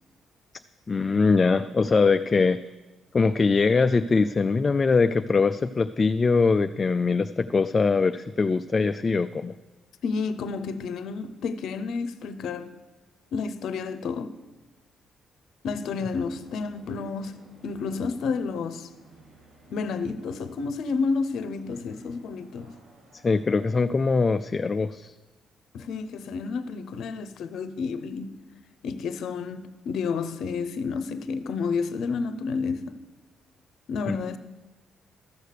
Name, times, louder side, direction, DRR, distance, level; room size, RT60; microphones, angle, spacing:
voice 1, 0.9-2.6 3.1-9.5 23.2-25.1 34.1-34.2, left 4 dB, 30° left, 0.3 m, -22 dB
voice 2, 10.0-12.7 13.3-14.4 15.6-18.9 19.7-22.8 25.7-28.4 28.8-33.0 33.9-34.4, left 5 dB, 75° left, 0.7 m, -30 dB
sound 1, 15.7-23.7, right 2 dB, 70° right, 4.6 m, -55 dB
13.5 x 6.5 x 6.7 m
cardioid pair, 90°, 0 cm